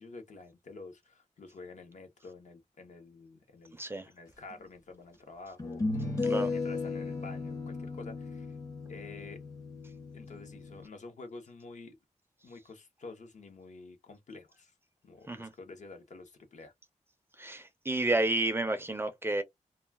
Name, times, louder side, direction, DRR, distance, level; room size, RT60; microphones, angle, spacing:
voice 1, 0.0-3.8 4.0-8.5 8.9-9.4 10.1-12.0 12.4-14.7 15.0-16.7, left 3 dB, 65° left, 0.8 m, -49 dB
voice 2, 3.8-4.1 6.3-6.5 15.3-15.5 17.4-19.4, right 2 dB, 15° right, 0.4 m, -30 dB
sound 1, 4.5-4.6 5.6-10.9, left 3 dB, 25° left, 0.6 m, -35 dB
2.3 x 2.2 x 3.3 m
wide cardioid pair, 170°, 13 cm